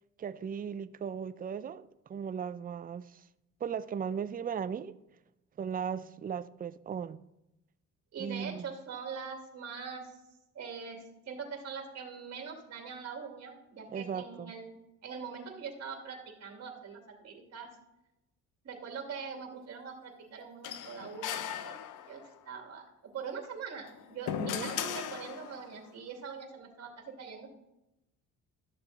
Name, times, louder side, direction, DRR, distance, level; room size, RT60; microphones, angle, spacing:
voice 1, 0.2-3.2 3.6-5.0 5.6-7.3 8.2-8.6 13.9-14.5 24.4-24.7, right 7 dB, 30° right, 0.5 m, -37 dB
voice 2, 8.1-10.0 10.5-14.7 15.0-17.7 18.6-21.8 22.1-22.9 23.1-27.5, right 6 dB, 55° right, 2.5 m, -42 dB
sound 1, 20.6-22.4 23.7-25.8, left 10 dB, 80° left, 0.7 m, -38 dB
12.5 x 6.8 x 4.1 m
cardioid pair, 90°, 30 cm